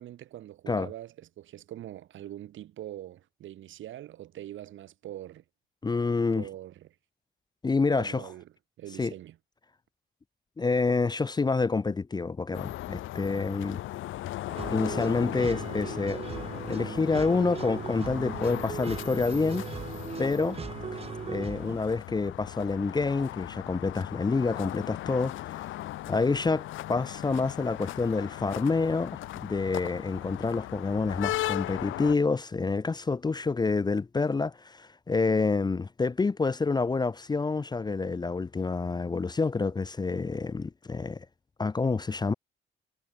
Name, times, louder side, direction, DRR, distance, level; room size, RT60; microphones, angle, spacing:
voice 1, 0.0-5.4 6.3-6.9 8.0-8.5 8.8-9.4, right 12 dB, 75° right, 2.5 m, -43 dB
voice 2, 5.8-6.4 7.6-8.2 9.0-9.1 10.6-13.8 14.7-16.2 16.7-19.7 20.2-20.6 21.2-25.7 26.1-41.3 41.6-42.3, left 4 dB, 20° left, 0.6 m, -28 dB
sound 1, 12.5-32.1, left 15 dB, 80° left, 0.9 m, -38 dB
sound 2, 14.5-21.8, right 7 dB, 30° right, 0.5 m, -38 dB
cardioid pair, 90°, 20 cm